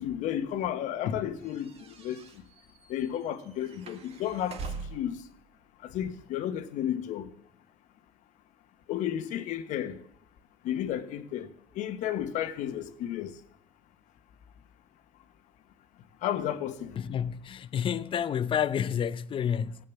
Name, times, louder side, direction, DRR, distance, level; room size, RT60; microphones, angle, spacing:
voice 1, 0.0-1.7 2.0-2.2 2.9-4.6 4.9-5.2 5.8-7.3 8.9-10.0 10.6-11.5 11.7-13.3 16.2-17.0, left 10 dB, 75° left, 1.4 m, -32 dB
sound 1, 1.4-5.2, right 4 dB, 50° right, 1.9 m, -43 dB
voice 2, 17.0-19.8, left 8 dB, 40° left, 0.8 m, -29 dB
16.0 x 8.8 x 7.3 m
cardioid pair, 115°, 13 cm